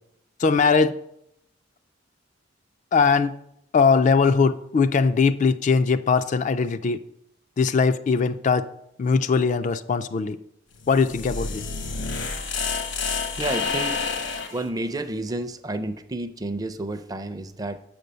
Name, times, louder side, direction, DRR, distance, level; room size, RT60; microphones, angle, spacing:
voice 1, 0.4-0.9 2.9-3.3 3.7-7.0 7.6-8.7 9.0-10.4 10.9-11.6, left 5 dB, 40° left, 0.3 m, -20 dB
sound 1, 10.8-14.6, left 4 dB, 70° left, 1.0 m, -29 dB
voice 2, 13.4-14.2 14.5-17.8, right 2 dB, 20° right, 0.5 m, -30 dB
6.8 x 5.2 x 6.7 m
head